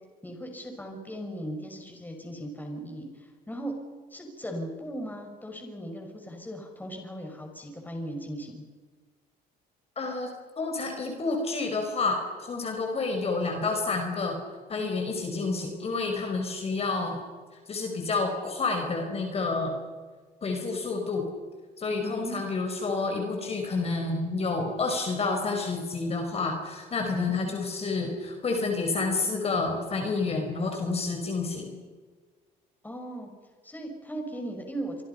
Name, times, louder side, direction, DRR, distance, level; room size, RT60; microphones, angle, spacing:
voice 1, 0.2-3.7 4.1-8.6 15.3-15.7 22.0-22.4 27.3-27.6 32.8-33.3 33.6-35.0, right 1 dB, 10° left, 2 dB, 6.2 m, -38 dB
voice 2, 10.0-10.3 10.6-14.4 14.7-17.2 17.7-19.8 20.4-21.3 21.8-31.7, left 3 dB, 35° left, 3 dB, 4.9 m, -29 dB
29.0 x 25.5 x 5.7 m, 1.5 s
cardioid pair, 110°, 17 cm